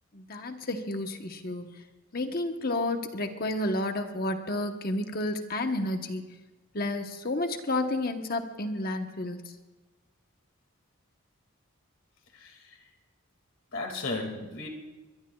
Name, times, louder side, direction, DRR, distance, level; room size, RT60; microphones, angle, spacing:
voice 1, 0.1-1.8 2.1-6.2 6.7-9.5, left 2 dB, 45° left, 5 dB, 1.1 m, -31 dB
voice 2, 12.3-12.7 13.7-14.7, left 2 dB, 65° left, 2 dB, 2.3 m, -35 dB
23.0 x 21.5 x 2.4 m, 1.2 s
head